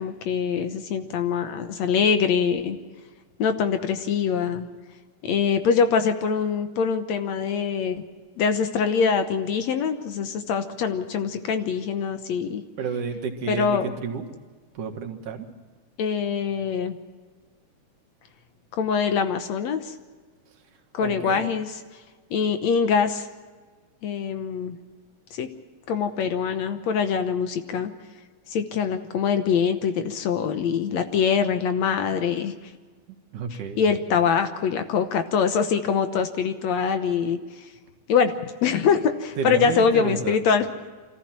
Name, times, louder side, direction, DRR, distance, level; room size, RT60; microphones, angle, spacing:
voice 1, 0.0-2.8 3.4-4.7 5.2-8.0 8.4-12.6 13.5-13.9 16.0-17.0 18.8-19.9 20.9-21.7 22.3-23.3 24.0-24.8 25.3-25.5 25.9-27.9 28.5-32.5 33.8-37.4 38.1-38.3 38.6-40.7, left 6 dB, 65° left, 8 dB, 2.1 m, -24 dB
voice 2, 12.8-14.3 14.7-15.5 21.0-21.5 33.3-33.8 39.4-40.4, right 6 dB, 80° right, 3 dB, 3.2 m, -31 dB
25.0 x 14.5 x 7.4 m, 1.4 s
omnidirectional pair, 3.6 m